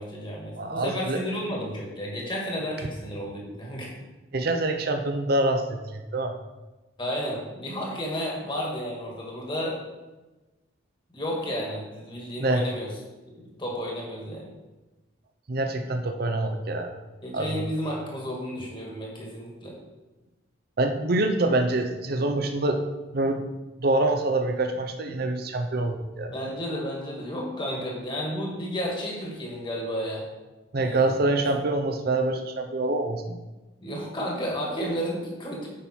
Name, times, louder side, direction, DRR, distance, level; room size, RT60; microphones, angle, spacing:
voice 1, 0.0-3.9 7.0-9.8 11.1-12.9 13.3-14.5 17.2-19.7 26.3-30.3 30.8-31.2 33.8-35.7, equal, 25° left, -2 dB, 1.7 m, -32 dB
voice 2, 0.6-1.2 4.3-6.4 12.4-12.6 15.5-16.9 17.3-17.6 20.8-22.8 23.1-23.4 23.8-26.3 30.7-33.4, right 2 dB, 50° right, 6 dB, 0.6 m, -25 dB
8.6 x 5.4 x 4.4 m, 1.1 s
head